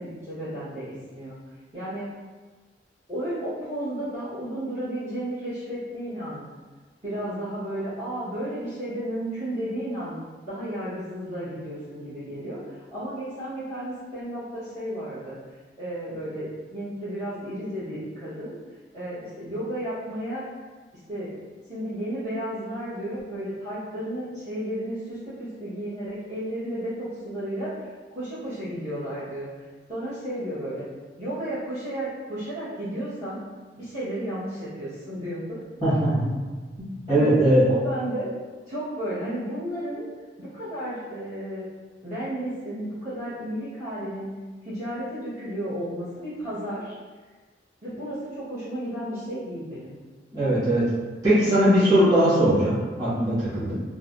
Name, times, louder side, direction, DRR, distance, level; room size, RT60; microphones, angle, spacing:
voice 1, 0.0-1.4 1.7-2.1 3.1-6.4 7.0-10.1 10.5-15.4 15.8-18.5 18.9-20.5 21.1-21.3 21.7-27.9 28.1-29.5 29.9-30.9 31.2-33.4 33.7-35.6 37.1-37.3 37.6-38.3 38.7-40.0 40.4-41.6 42.0-44.3 44.6-46.9 47.8-50.0, right 1 dB, 40° right, -14 dB, 1.2 m, -33 dB
voice 2, 35.8-36.3 36.8-37.6 50.3-50.9 51.2-53.7, right 1 dB, 25° right, -13 dB, 1.4 m, -20 dB
3.5 x 2.2 x 2.5 m, 1.3 s
head